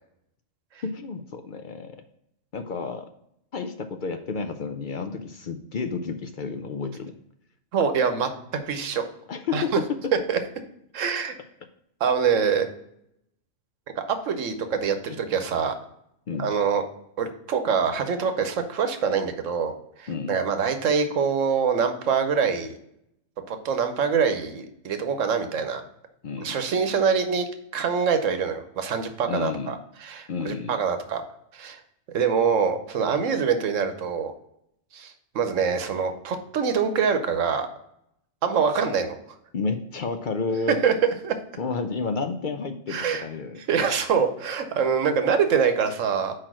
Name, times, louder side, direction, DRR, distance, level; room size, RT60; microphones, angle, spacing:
voice 1, 0.8-2.0 2.5-3.1 3.5-7.1 9.3-10.1 15.1-15.2 16.3-16.6 20.1-20.4 26.2-26.6 29.3-29.8 30.3-30.8 39.5-40.8 41.6-43.6, left 4 dB, 55° left, 7 dB, 0.5 m, -31 dB
voice 2, 7.7-8.3 8.6-9.0 9.5-9.6 10.3-10.4 10.9-11.3 12.0-12.7 14.0-15.7 16.4-16.8 17.2-22.8 23.5-25.8 26.4-27.5 27.7-31.2 31.5-31.8 32.1-34.3 34.9-37.7 38.4-39.1 40.8-40.9 41.2-41.3 42.9-43.2 43.7-46.3, right 6 dB, 80° right, 8 dB, 1.2 m, -24 dB
4.8 x 4.4 x 6.0 m, 0.76 s
omnidirectional pair, 1.3 m